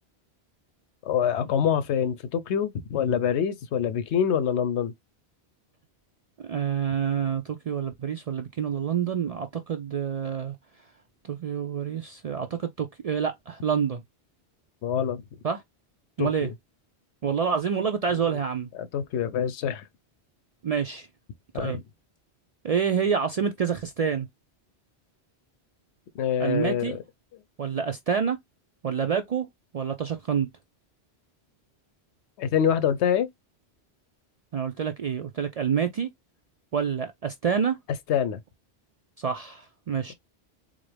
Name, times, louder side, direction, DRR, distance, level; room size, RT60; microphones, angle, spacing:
voice 1, 1.0-4.9 14.8-15.2 16.2-16.5 18.8-19.8 21.5-21.7 26.2-27.0 32.4-33.3 38.1-38.4, left 8 dB, 90° left, 0.9 m, -25 dB
voice 2, 6.4-10.6 11.2-14.0 15.4-15.6 16.2-16.5 17.2-18.7 20.6-21.1 21.5-21.8 22.6-24.3 26.4-27.0 27.6-28.4 28.8-29.5 29.7-30.5 34.5-36.1 36.7-37.8 39.2-40.1, right 7 dB, 60° right, 0.4 m, -27 dB
4.0 x 2.5 x 3.2 m
omnidirectional pair, 1.1 m